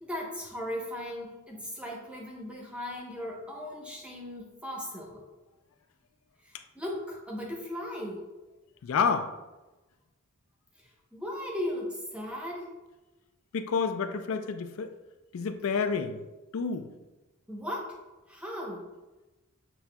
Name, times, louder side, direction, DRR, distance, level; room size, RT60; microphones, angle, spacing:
voice 1, 0.0-5.2 6.7-8.2 10.8-12.7 17.5-18.0 18.3-18.9, left 1 dB, 5° right, -3 dB, 0.8 m, -37 dB
voice 2, 8.8-9.3 13.5-14.9 15.3-16.2 16.5-16.9, left 5 dB, 70° left, 9 dB, 0.4 m, -29 dB
7.7 x 2.8 x 2.3 m, 1.1 s
head